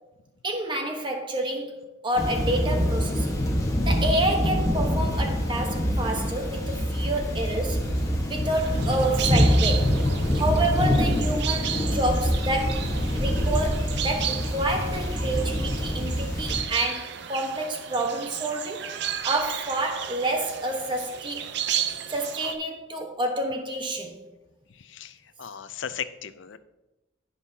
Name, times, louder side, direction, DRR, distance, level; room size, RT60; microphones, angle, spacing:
voice 1, 0.4-3.4 3.9-7.8 8.3-9.9 10.3-12.8 13.1-18.8 19.2-21.5 22.1-24.2, right 1 dB, 25° right, 1.2 m, -28 dB
Thunder / Rain, 2.2-16.6, equal, 15° left, 1.3 m, -25 dB
sound 1, 8.5-22.5, right 9 dB, 55° right, 0.6 m, -34 dB
voice 2, 24.8-26.6, left 8 dB, 65° left, 0.5 m, -37 dB
16.0 x 5.5 x 2.8 m
head